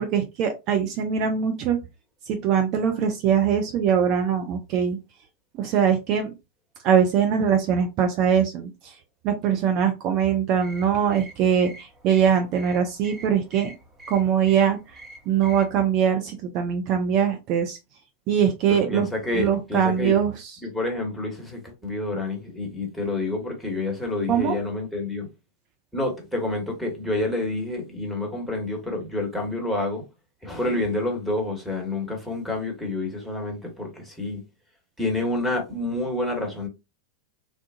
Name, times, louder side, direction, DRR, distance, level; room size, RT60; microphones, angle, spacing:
voice 1, 0.0-1.8 2.3-5.0 5.6-6.3 6.8-9.0 9.2-13.7 14.1-17.8 18.3-19.1 19.3-20.5 24.3-24.6, right 8 dB, 40° right, 0.4 m, -22 dB
sound 1, 10.6-15.7, right 1 dB, 20° right, 0.9 m, -46 dB
voice 2, 18.7-20.2 20.6-25.3 25.9-30.0 30.4-34.4 35.0-36.7, left 2 dB, ahead, 1.2 m, -28 dB
3.4 x 2.4 x 2.6 m
figure-of-eight pair, 90°, 0 cm